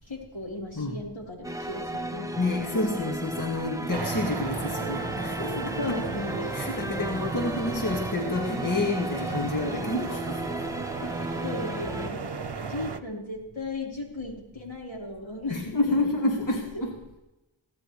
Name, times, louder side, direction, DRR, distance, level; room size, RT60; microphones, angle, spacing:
voice 1, 0.0-2.3 2.6-3.1 5.5-6.5 6.9-7.0 11.4-12.3 12.6-15.9 16.5-16.9, left 2 dB, 75° left, -3 dB, 4.5 m, -36 dB
sound 1, 1.4-12.1, right 1 dB, 5° right, 0.7 m, -35 dB
voice 2, 2.4-5.9 6.5-10.5 11.0-11.2 12.6-12.7 15.5-16.9, left 2 dB, 40° left, -1 dB, 2.2 m, -29 dB
sound 2, 3.9-13.0, right 5 dB, 60° right, 1.0 m, -36 dB
22.0 x 16.5 x 3.3 m, 0.98 s
wide cardioid pair, 40°, 46 cm